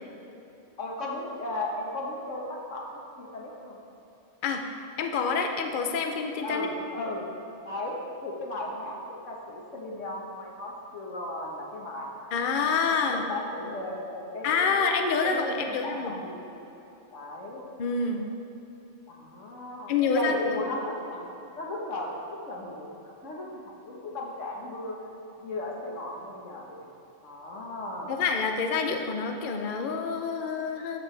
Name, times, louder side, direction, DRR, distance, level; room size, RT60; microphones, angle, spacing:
voice 1, 0.8-3.8 6.4-7.2 7.6-12.3 13.1-14.8 15.2-16.5 17.1-17.7 19.1-21.3 21.5-22.9 23.2-25.0 25.4-26.9 27.2-28.2, left 1 dB, 85° left, -2 dB, 1.7 m, -36 dB
voice 2, 5.0-6.7 12.3-13.2 14.4-16.1 17.8-18.3 19.9-20.6 28.1-31.0, left 5 dB, 50° left, 4 dB, 0.7 m, -27 dB
12.5 x 6.9 x 3.3 m, 3.0 s
omnidirectional pair, 1.2 m